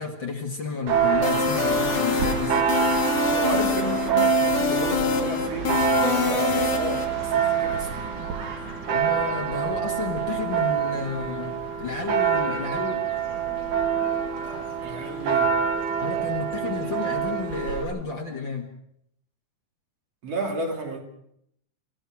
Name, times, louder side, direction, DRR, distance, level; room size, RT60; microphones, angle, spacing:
voice 1, 0.0-2.6 8.9-13.0 16.0-18.7, left 4 dB, 45° left, 2.6 m, -31 dB
Church bell, 0.9-17.8, right 8 dB, 85° right, 4.0 m, -26 dB
sound 1, 1.2-7.1, left 6 dB, 80° left, 3.2 m, -25 dB
voice 2, 3.2-8.1 14.8-15.6 20.2-21.0, right 2 dB, 55° right, 4.1 m, -32 dB
27.5 x 15.5 x 6.2 m
omnidirectional pair, 3.4 m